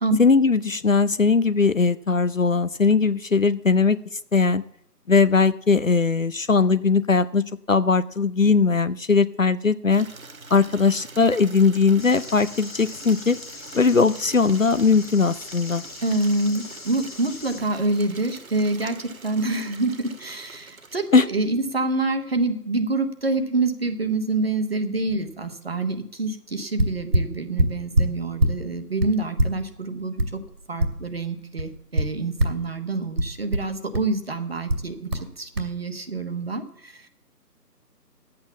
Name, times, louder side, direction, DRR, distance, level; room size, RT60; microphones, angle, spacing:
voice 1, 0.2-4.0 4.3-4.6 5.1-10.1 10.5-13.4 13.7-15.8 21.1-21.3, left 4 dB, 55° left, 16 dB, 0.6 m, -19 dB
Water tap faucet / Liquid, 9.9-21.5, right 3 dB, 55° right, 1.2 m, -44 dB
sound 1, 12.0-17.6, left 4 dB, 30° left, 1.8 m, -41 dB
voice 2, 16.0-37.1, right 2 dB, 40° right, 8 dB, 1.2 m, -27 dB
sound 2, 26.5-26.6 26.8-28.6 29.0-31.3 31.6-32.7 33.2-34.2 34.7-35.3 35.6-35.7, right 1 dB, 70° right, 2.4 m, -23 dB
11.5 x 8.6 x 7.0 m, 0.71 s
figure-of-eight pair, 155°, 48 cm